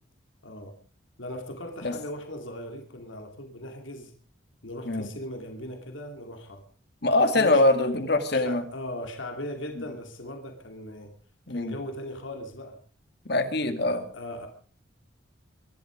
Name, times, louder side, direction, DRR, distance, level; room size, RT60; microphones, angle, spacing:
voice 1, 0.4-0.7 1.2-4.1 4.6-6.6 7.3-7.9 8.3-11.1 11.5-12.8 13.6-14.5, left 1 dB, 75° left, 4 dB, 2.7 m, -39 dB
voice 2, 7.0-8.6 11.5-11.7 13.3-14.1, left 2 dB, 55° left, 8 dB, 2.2 m, -23 dB
23.5 x 11.5 x 5.1 m, 0.43 s
head